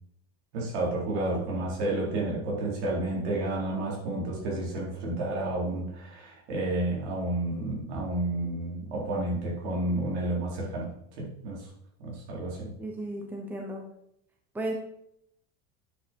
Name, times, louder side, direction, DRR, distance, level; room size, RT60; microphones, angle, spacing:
voice 1, 0.5-11.7 12.0-12.7, right 2 dB, 85° right, -3 dB, 4.3 m, -31 dB
voice 2, 12.8-13.9 14.5-14.7, right 1 dB, 5° right, 1 dB, 0.9 m, -34 dB
9.3 x 7.8 x 4.5 m, 0.75 s
cardioid pair, 175°, 33 cm